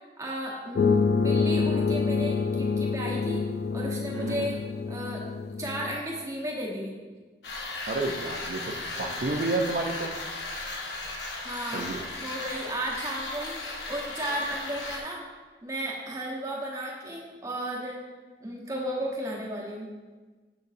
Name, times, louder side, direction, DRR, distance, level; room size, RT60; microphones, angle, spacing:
voice 1, 0.2-3.4 3.7-4.6 4.9-5.3 5.6-6.9 11.4-11.9 12.2-13.6 13.9-15.3 15.6-18.0 18.4-19.9, right 1 dB, 20° right, -3 dB, 1.0 m, -34 dB
sound 1, 0.7-6.0, left 5 dB, 65° left, 0.3 m, -27 dB
voice 2, 4.1-4.5 7.9-10.1 11.7-12.0, right 2 dB, 55° right, 1 dB, 0.5 m, -30 dB
sound 2, 7.4-15.0, left 2 dB, 80° left, 0.9 m, -36 dB
6.8 x 6.5 x 2.6 m, 1.4 s
head